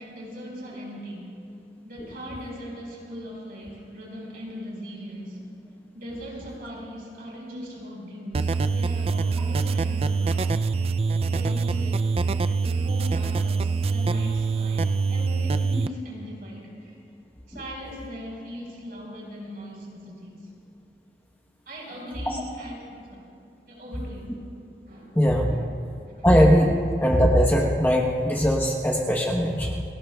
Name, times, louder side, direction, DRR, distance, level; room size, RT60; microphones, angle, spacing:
voice 1, 0.0-1.4 1.8-5.5 5.9-10.6 11.3-12.1 12.6-17.0 17.5-20.5 21.7-24.5 24.9-25.2 25.5-25.7 26.1-26.3 26.6-26.7, equal, 55° right, -3 dB, 4.5 m, -39 dB
sound 1, 8.3-15.9, right 4 dB, 35° right, 0.3 m, -24 dB
voice 2, 25.1-25.5 26.2-26.7 27.0-29.8, equal, 10° left, -1 dB, 1.0 m, -20 dB
30.0 x 18.5 x 2.3 m, 2.5 s
head